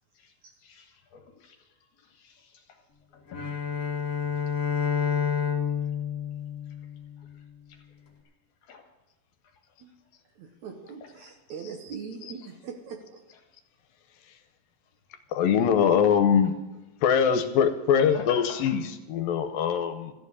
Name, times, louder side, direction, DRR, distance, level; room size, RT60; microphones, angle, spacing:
voice 1, 0.1-2.9 3.1-3.5 6.7-6.8 7.2-7.4 7.7-7.9 8.6-8.9 9.4-9.6 11.2-11.3 18.0-18.7, left 5 dB, 60° left, 2.6 m, -46 dB
Bowed string instrument, 3.3-7.5, left 7 dB, 30° left, 1.8 m, -29 dB
voice 2, 10.4-13.2, right 6 dB, 65° right, 2.1 m, -41 dB
voice 3, 15.3-16.5 17.0-20.1, left 7 dB, 80° left, 2.5 m, -23 dB
14.0 x 7.1 x 9.8 m
omnidirectional pair, 4.2 m